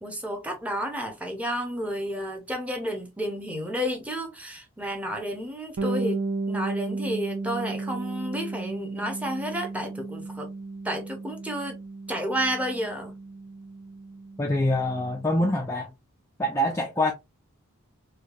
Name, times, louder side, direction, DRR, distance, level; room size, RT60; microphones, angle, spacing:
voice 1, 0.0-10.5 10.8-11.8 12.1-13.2, equal, 5° right, 0.8 m, -31 dB
Bass guitar, 5.8-15.4, right 3 dB, 75° right, 0.6 m, -34 dB
voice 2, 14.4-15.9 16.4-17.1, left 1 dB, 15° left, 0.4 m, -25 dB
4.4 x 2.3 x 2.5 m
head